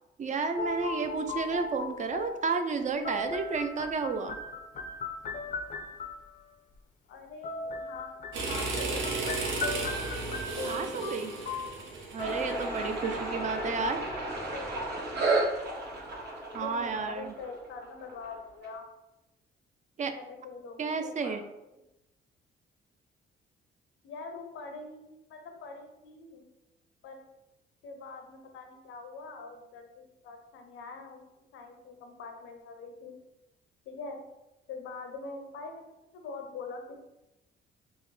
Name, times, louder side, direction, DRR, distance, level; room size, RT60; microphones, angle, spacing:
voice 1, 0.2-4.4 10.7-11.3 12.1-14.0 16.5-17.3 20.0-20.1 20.8-21.4, right 4 dB, 40° right, 7 dB, 0.4 m, -31 dB
sound 1, 0.6-6.4 7.4-14.3, left 3 dB, 40° left, 0.4 m, -38 dB
voice 2, 7.1-9.4 13.6-15.4 16.5-18.8 20.1-21.4 21.6-21.8 24.0-26.5 27.0-27.2 27.8-31.2 31.5-33.2 33.9-34.2 34.7-37.0, left 4 dB, 85° left, 4 dB, 0.6 m, -44 dB
sound 2, 8.3-13.2, right 3 dB, 80° right, 0.7 m, -34 dB
sound 3, 12.2-18.7, right 2 dB, 55° right, 1.0 m, -33 dB
3.6 x 2.1 x 3.1 m, 0.96 s
cardioid pair, 90°, 20 cm